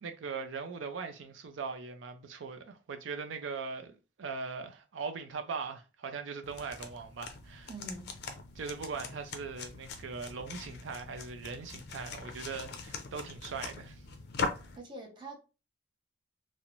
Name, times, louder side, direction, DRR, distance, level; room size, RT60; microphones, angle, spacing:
voice 1, 0.0-7.7 8.6-14.0, right 5 dB, 75° right, 0.4 m, -40 dB
sound 1, 6.4-14.8, left 4 dB, 60° left, 0.4 m, -41 dB
voice 2, 7.7-8.2 14.7-15.4, right 2 dB, 25° right, 0.6 m, -44 dB
2.5 x 2.0 x 3.0 m
head